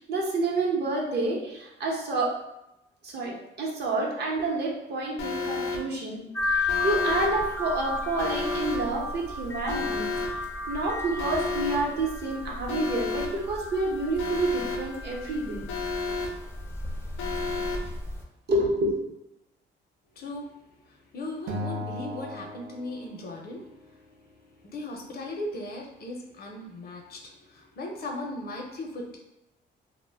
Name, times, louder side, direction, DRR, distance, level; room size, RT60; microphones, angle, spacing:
voice 1, 0.0-2.3 3.0-10.1 10.7-15.7 18.5-19.1, right 2 dB, 55° right, -1 dB, 0.8 m, -29 dB
Alarm, 5.2-5.8 6.7-7.3 8.2-8.8 9.7-10.3 11.2-11.8 12.7-13.3 14.2-14.8 15.7-16.3 17.2-17.8, left 4 dB, 90° left, 0.5 m, -31 dB
sound 1, 6.3-18.2, left 3 dB, 10° left, 0.4 m, -34 dB
voice 2, 20.1-20.6 20.8-24.3 24.6-29.2, left 1 dB, 50° left, 1 dB, 0.6 m, -38 dB
Acoustic guitar, 21.5-23.9, left 1 dB, 80° right, 0.4 m, -37 dB
2.1 x 2.0 x 3.3 m, 0.89 s
cardioid pair, 90°, 20 cm